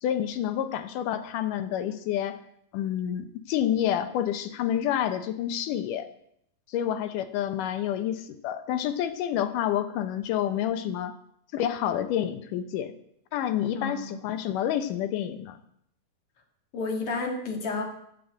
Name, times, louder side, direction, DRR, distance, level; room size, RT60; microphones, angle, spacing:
voice 1, 0.0-2.4 2.7-6.1 6.7-11.1 11.5-12.9 13.3-15.6, left 10 dB, 80° left, 10 dB, 2.4 m, -28 dB
voice 2, 13.7-14.2 16.7-17.8, left 3 dB, 45° left, 2 dB, 2.6 m, -31 dB
15.0 x 5.2 x 8.1 m, 0.72 s
omnidirectional pair, 3.8 m